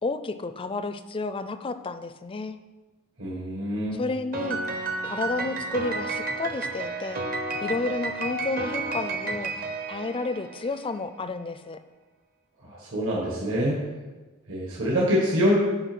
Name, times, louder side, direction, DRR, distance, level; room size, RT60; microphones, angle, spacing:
voice 1, 0.0-2.6 3.9-4.6 5.0-7.2 7.6-9.5 9.9-11.8, left 3 dB, 25° left, 11 dB, 0.4 m, -31 dB
voice 2, 3.2-4.0 12.6-13.8 14.5-15.5, equal, 60° right, -4 dB, 1.6 m, -25 dB
Piano, 4.3-10.8, right 3 dB, 40° right, 0.8 m, -31 dB
8.1 x 5.2 x 6.0 m, 1.2 s
head